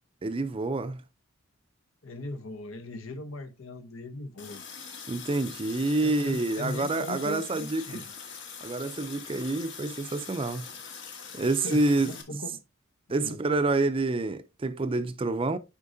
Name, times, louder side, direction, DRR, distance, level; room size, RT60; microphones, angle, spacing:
voice 1, 0.2-1.0 5.1-8.0 8.6-10.6 11.3-12.4 13.1-15.6, right 2 dB, 25° right, 0.5 m, -28 dB
voice 2, 2.0-4.6 6.0-8.1 11.6-12.6 13.2-13.4, left 2 dB, 75° left, 1.0 m, -39 dB
Water tap faucet, 4.4-12.2, left 6 dB, 60° left, 1.3 m, -43 dB
8.3 x 5.1 x 2.6 m
head